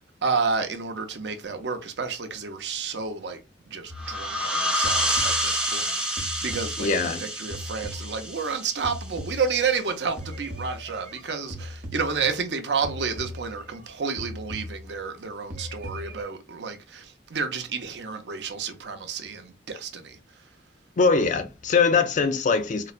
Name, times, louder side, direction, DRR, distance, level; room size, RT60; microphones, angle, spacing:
voice 1, 0.0-3.4 3.7-20.4, right 5 dB, 70° right, 0.6 m, -30 dB
sound 1, 3.9-9.3, equal, 5° right, 0.7 m, -28 dB
sound 2, 3.9-4.5 4.8-7.2 7.5-9.9 10.2-12.5 12.8-13.9 14.2-15.2 15.5-16.2, equal, 50° right, 0.9 m, -39 dB
voice 2, 6.8-7.2 21.0-22.9, left 4 dB, 45° left, 0.4 m, -22 dB
3.9 x 2.1 x 2.4 m
head